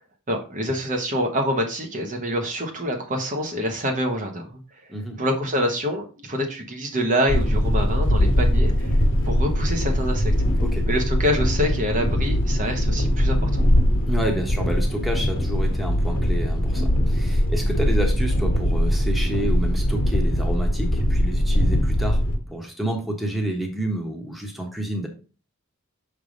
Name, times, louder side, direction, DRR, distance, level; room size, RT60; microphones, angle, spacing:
voice 1, 0.3-4.6 5.2-9.0 9.2-10.3 10.9-13.7, equal, 35° right, 3 dB, 1.0 m, -26 dB
voice 2, 4.9-5.2 10.6-10.9 14.1-22.2 22.5-25.1, right 1 dB, ahead, 1 dB, 1.2 m, -29 dB
sound 1, 7.3-22.4, equal, 60° left, 1.3 m, -21 dB
6.3 x 3.4 x 5.1 m, 0.35 s
head